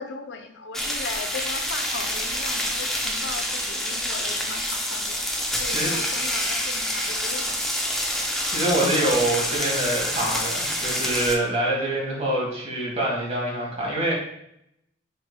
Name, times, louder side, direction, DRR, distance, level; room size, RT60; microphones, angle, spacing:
voice 1, 0.0-5.3 5.6-7.6, left 4 dB, 85° left, 6 dB, 0.5 m, -37 dB
sound 1, 0.7-11.3, equal, ahead, 0.5 m, -27 dB
voice 2, 8.2-14.1, right 1 dB, 35° right, -3 dB, 1.5 m, -25 dB
6.0 x 3.3 x 2.2 m, 0.77 s
head